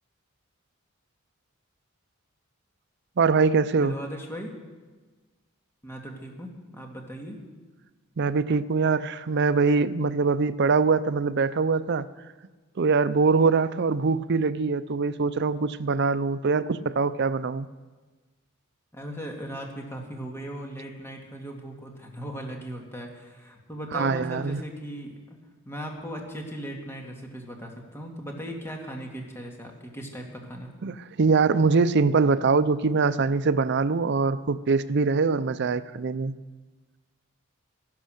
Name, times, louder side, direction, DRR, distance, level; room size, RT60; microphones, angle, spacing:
voice 1, 3.2-4.0 8.2-12.1 12.8-17.7 23.9-24.6 30.8-36.3, right 4 dB, 55° right, 15 dB, 0.5 m, -23 dB
voice 2, 3.8-4.5 5.8-7.4 18.9-25.4 25.6-30.7, equal, 10° left, 1 dB, 2.1 m, -38 dB
14.5 x 12.0 x 6.4 m, 1.3 s
head